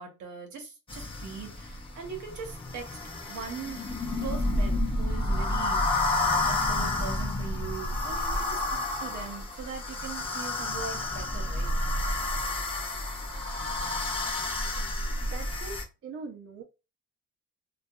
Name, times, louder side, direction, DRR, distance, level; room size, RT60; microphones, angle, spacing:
voice 1, 0.0-3.0 3.3-3.8 4.2-11.7, right 6 dB, 75° right, 0.9 m, -41 dB
sound 1, 0.9-15.8, left 2 dB, 20° left, 0.6 m, -30 dB
voice 2, 14.7-16.6, right 4 dB, 45° right, 0.6 m, -43 dB
2.6 x 2.3 x 2.3 m
cardioid pair, 90°, 30 cm